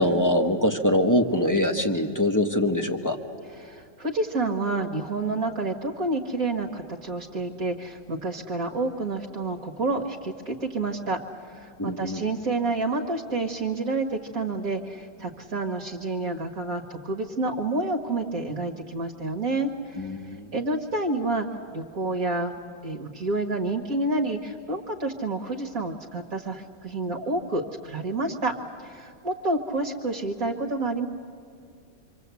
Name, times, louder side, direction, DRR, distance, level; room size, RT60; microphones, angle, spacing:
voice 1, 0.0-3.2 11.8-12.2 20.0-20.5, left 1 dB, 10° left, 5 dB, 1.2 m, -23 dB
voice 2, 3.6-11.2 11.5-21.5 21.7-28.5 28.8-31.1, right 2 dB, 55° right, 3 dB, 1.9 m, -29 dB
26.0 x 26.0 x 8.3 m, 2.4 s
omnidirectional pair, 1.9 m